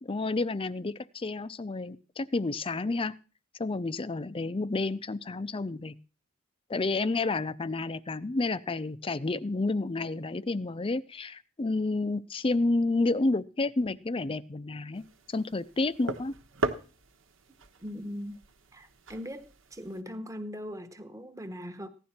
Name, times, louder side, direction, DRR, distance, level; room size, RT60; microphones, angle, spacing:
voice 1, 0.0-3.1 3.6-5.9 6.7-16.3, left 2 dB, 25° left, 0.5 m, -30 dB
sound 1, 14.9-20.0, right 2 dB, 70° right, 1.2 m, -39 dB
voice 2, 17.8-18.4 18.7-21.9, equal, 15° right, 1.1 m, -40 dB
16.0 x 11.0 x 4.3 m
head